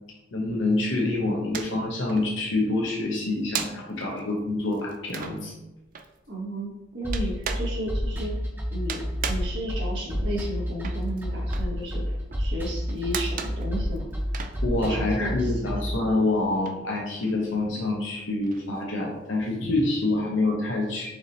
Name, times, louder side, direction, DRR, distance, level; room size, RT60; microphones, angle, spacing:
voice 1, 0.3-5.5 14.6-21.1, left 2 dB, 85° left, -2 dB, 0.8 m, -26 dB
sound 1, 0.8-1.8 2.1-15.5 15.7-19.4, right 7 dB, 45° right, 0.4 m, -38 dB
voice 2, 6.3-8.3 8.7-14.0 14.9-15.5, equal, 70° right, -4 dB, 1.5 m, -33 dB
sound 2, 7.0-15.9, equal, 10° right, 0.7 m, -29 dB
4.6 x 2.7 x 4.0 m, 0.99 s
head